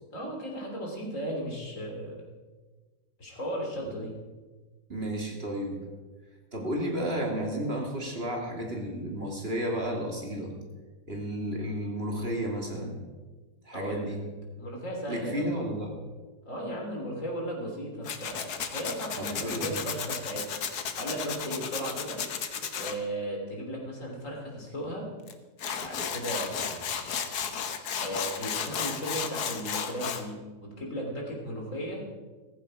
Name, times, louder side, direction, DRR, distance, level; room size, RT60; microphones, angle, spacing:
voice 1, 0.1-2.2 3.2-4.1 13.7-14.2 14.6-15.5 16.5-20.5 21.0-22.2 22.7-25.1 25.8-26.8 28.0-32.0, equal, 55° left, 0 dB, 3.7 m, -36 dB
voice 2, 4.9-5.8 6.5-10.5 11.1-13.0 13.6-14.2 15.1-16.0 19.2-19.9, equal, 40° right, 0 dB, 2.8 m, -32 dB
Tools, 18.0-22.9 25.3-25.4 25.6-30.2, left 7 dB, 85° left, 1.6 m, -33 dB
15.0 x 14.5 x 4.9 m, 1.3 s
omnidirectional pair, 1.7 m